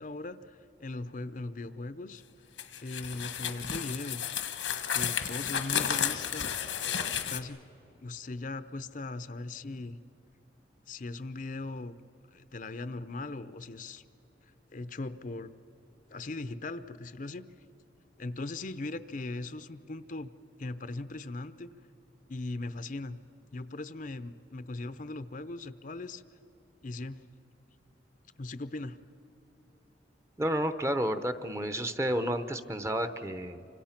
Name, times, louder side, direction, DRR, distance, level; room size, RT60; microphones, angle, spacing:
voice 1, 0.0-2.2 2.8-4.2 4.9-6.5 7.3-7.6 8.0-10.0 10.9-11.9 12.3-14.0 14.7-15.5 16.1-17.5 18.2-20.3 20.6-21.7 22.3-23.2 23.5-26.2 26.8-27.2 28.4-29.0, left 2 dB, 45° left, 12 dB, 0.6 m, -39 dB
sound 1, 2.6-7.4, left 8 dB, 90° left, 1.5 m, -32 dB
voice 2, 30.4-33.7, equal, 15° right, 10 dB, 0.8 m, -31 dB
28.5 x 25.5 x 5.9 m, 3.0 s
head